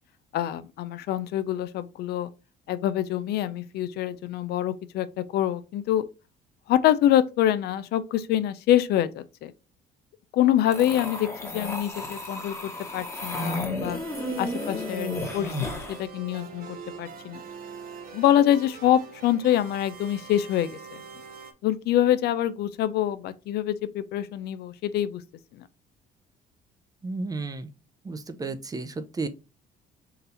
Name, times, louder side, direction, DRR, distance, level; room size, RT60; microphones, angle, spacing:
voice 1, 0.3-2.3 2.7-6.0 6.7-9.5 10.3-14.0 14.4-15.5 15.9-17.4 18.1-21.0 21.6-25.2 25.6-25.7, left 11 dB, 70° left, 0.5 m, -25 dB
sound 1, 10.7-16.0, left 2 dB, 15° left, 1.2 m, -33 dB
sound 2, 13.9-21.5, right 5 dB, 60° right, 0.7 m, -43 dB
voice 2, 27.0-27.7 28.0-29.3, right 3 dB, 20° right, 0.6 m, -33 dB
3.9 x 2.6 x 4.2 m
cardioid pair, 110°, 17 cm